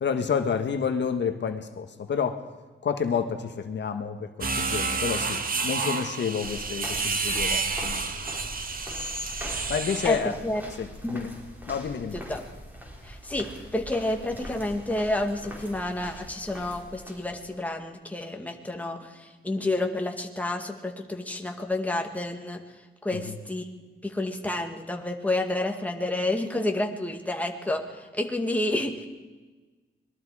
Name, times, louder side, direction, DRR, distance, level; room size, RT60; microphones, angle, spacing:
voice 1, 0.0-2.4 2.8-8.0 9.4-10.4 10.8-11.3 11.7-12.2 23.1-23.3, left 6 dB, 60° left, 7 dB, 1.5 m, -29 dB
sound 1, 4.4-10.3, right 4 dB, 45° right, 1.7 m, -30 dB
sound 2, 6.4-17.6, equal, 10° right, 5.0 m, -42 dB
voice 2, 10.0-10.6 11.0-11.2 12.1-12.4 13.0-22.6 23.0-23.7 24.0-29.1, left 1 dB, 5° left, 3 dB, 2.1 m, -30 dB
25.5 x 21.5 x 4.9 m, 1.3 s
wide cardioid pair, 140°, 21 cm